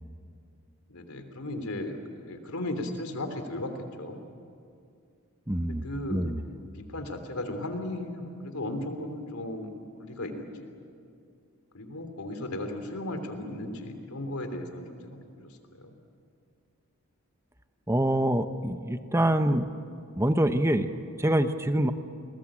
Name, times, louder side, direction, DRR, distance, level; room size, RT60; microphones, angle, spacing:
voice 1, 0.9-4.3 5.6-6.2 6.7-10.7 11.7-16.0, left 1 dB, 80° left, 7 dB, 3.2 m, -36 dB
voice 2, 5.5-5.8 6.1-6.4 17.9-19.7 20.2-21.9, right 1 dB, 10° right, 9 dB, 1.0 m, -25 dB
29.5 x 20.5 x 8.8 m, 2.4 s
head